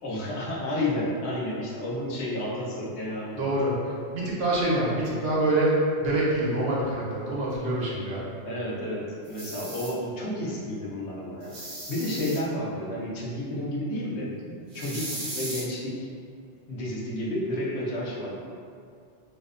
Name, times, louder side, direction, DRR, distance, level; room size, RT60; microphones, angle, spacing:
voice 1, 0.0-3.5 8.4-14.3 14.7-16.1 16.7-18.4, left 1 dB, 75° left, -4 dB, 0.8 m, -31 dB
voice 2, 3.4-3.7 4.1-8.2, right 1 dB, 75° right, -5 dB, 0.9 m, -25 dB
sound 1, 9.2-9.9 11.4-12.4 14.7-15.6, right 1 dB, 55° right, 0.7 m, -37 dB
2.6 x 2.1 x 2.3 m, 2.3 s
omnidirectional pair, 1.2 m